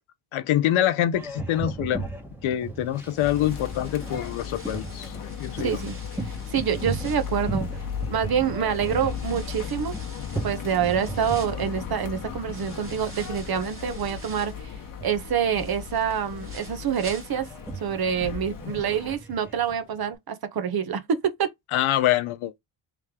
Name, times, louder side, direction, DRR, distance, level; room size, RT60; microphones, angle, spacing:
voice 1, 0.3-2.1 2.4-5.1 5.4-5.8 21.7-22.6, left 12 dB, 75° left, 0.7 m, -25 dB
Boat Water vehicle, 1.1-20.1, right 3 dB, 5° right, 1.0 m, -38 dB
sound 1, 2.9-8.2 8.7-14.7 15.1-17.7 18.0-18.1 18.6-18.7, right 3 dB, 25° right, 1.6 m, -48 dB
sound 2, 3.2-19.2, left 8 dB, 45° left, 1.0 m, -36 dB
voice 2, 5.6-6.0 6.3-7.6 8.1-9.9 10.4-14.7 15.0-17.5 17.8-21.5, right 8 dB, 50° right, 0.8 m, -26 dB
3.4 x 3.1 x 3.5 m
cardioid pair, 105°, 49 cm